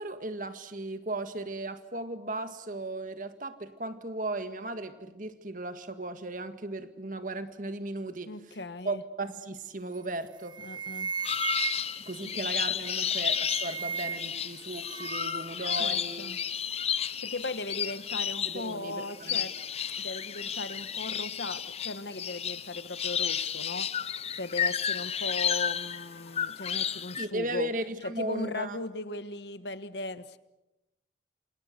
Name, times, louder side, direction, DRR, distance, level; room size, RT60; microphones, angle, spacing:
voice 1, 0.0-8.3 8.8-10.6 12.1-16.3 18.4-19.5 27.2-28.8, right 2 dB, 45° right, 9 dB, 1.8 m, -36 dB
voice 2, 8.3-9.0 10.6-11.1 11.7-11.9 12.2-12.4 15.8-16.4 17.0-19.5 20.0-27.7 28.0-30.4, left 2 dB, 75° left, 12 dB, 1.4 m, -38 dB
sound 1, 9.9-10.2 10.5-12.1 12.9-14.4 14.7-15.5, right 6 dB, 25° right, 1.2 m, -36 dB
sound 2, 11.2-27.3, left 8 dB, 35° left, 0.8 m, -32 dB
28.0 x 27.5 x 6.7 m, 0.99 s
head